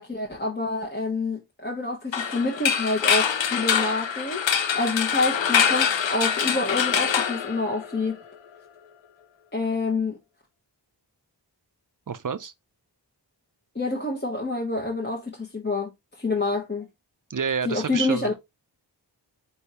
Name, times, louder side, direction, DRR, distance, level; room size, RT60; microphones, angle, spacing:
voice 1, 0.0-8.2 9.5-10.2 13.7-15.9 16.2-16.9 17.6-18.3, left 3 dB, 25° left, 0.9 m, -27 dB
sound 1, 2.1-8.1, left 7 dB, 90° left, 0.5 m, -24 dB
voice 2, 12.1-12.5 17.3-18.3, right 6 dB, 50° right, 0.5 m, -29 dB
4.5 x 3.5 x 2.8 m
wide cardioid pair, 50°, 43 cm